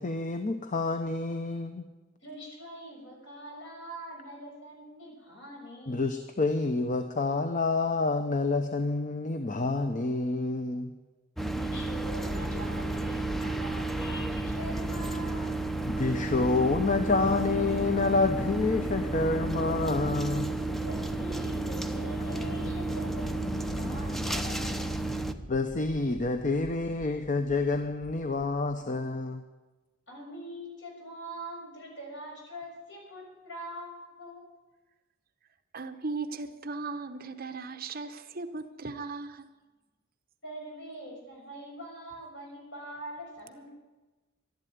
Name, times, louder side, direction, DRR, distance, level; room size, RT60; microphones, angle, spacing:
voice 1, 0.0-1.8 5.9-10.9 15.9-20.6 25.5-29.4, left 3 dB, 40° left, 0.8 m, -28 dB
voice 2, 2.2-6.2 11.6-15.6 20.8-25.0 30.1-34.4 40.4-43.7, equal, 65° left, 6.5 m, -43 dB
sound 1, 11.4-25.3, right 2 dB, ahead, 0.7 m, -32 dB
sound 2, 11.8-28.7, equal, 30° right, 2.6 m, -44 dB
voice 3, 35.7-39.5, right 3 dB, 50° right, 0.9 m, -37 dB
12.0 x 11.0 x 9.4 m
head